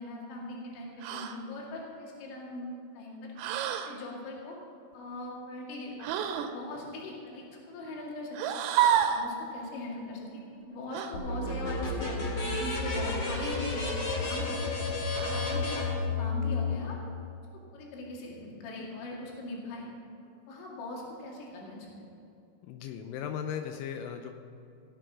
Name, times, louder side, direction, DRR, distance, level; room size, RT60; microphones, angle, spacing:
voice 1, 0.0-2.7 2.9-3.3 3.9-4.6 4.9-6.1 6.4-8.6 9.1-14.9 15.2-17.0 17.7-19.9 20.5-22.0, left 2 dB, 65° left, -3 dB, 4.4 m, -40 dB
sound 1, 1.0-1.4 3.4-4.0 6.0-6.6 8.3-9.3 10.9-11.1 13.2-13.7 15.1-15.6, right 9 dB, 90° right, 3.3 m, -29 dB
sound 2, 11.1-16.7, left 3 dB, 40° left, 2.5 m, -31 dB
voice 2, 22.7-24.3, left 8 dB, 85° left, 6 dB, 2.8 m, -37 dB
17.5 x 7.9 x 5.9 m, 2.7 s
omnidirectional pair, 5.9 m